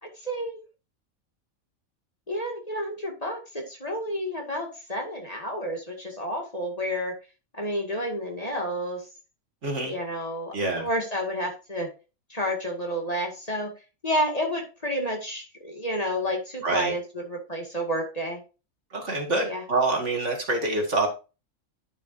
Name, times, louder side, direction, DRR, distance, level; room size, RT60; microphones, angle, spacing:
voice 1, 0.2-0.6 2.3-7.1 7.6-9.0 9.8-10.5 10.8-11.9 12.3-13.7 14.0-18.4 19.4-19.6, equal, 25° left, 1 dB, 2.2 m, -30 dB
voice 2, 9.6-9.9 10.5-10.9 16.6-16.9 18.9-21.1, right 2 dB, 55° right, 2 dB, 2.3 m, -26 dB
10.5 x 6.9 x 2.6 m, 0.30 s
omnidirectional pair, 1.5 m